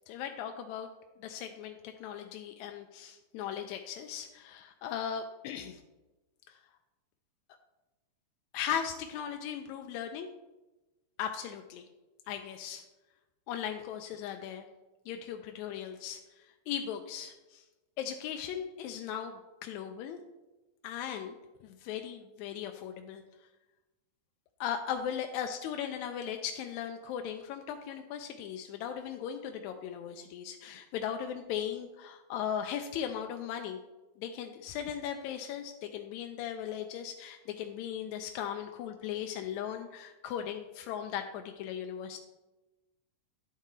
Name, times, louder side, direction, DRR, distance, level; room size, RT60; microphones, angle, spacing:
voice 1, 0.1-0.9 1.2-5.8 6.5-6.6 8.5-10.3 11.2-11.8 12.3-12.8 13.5-14.6 15.1-17.6 18.0-20.2 20.8-21.3 21.6-23.2 24.6-33.8 34.2-42.2, left 9 dB, 80° left, 5 dB, 1.7 m, -38 dB
10.5 x 3.7 x 4.2 m, 1.1 s
omnidirectional pair, 3.6 m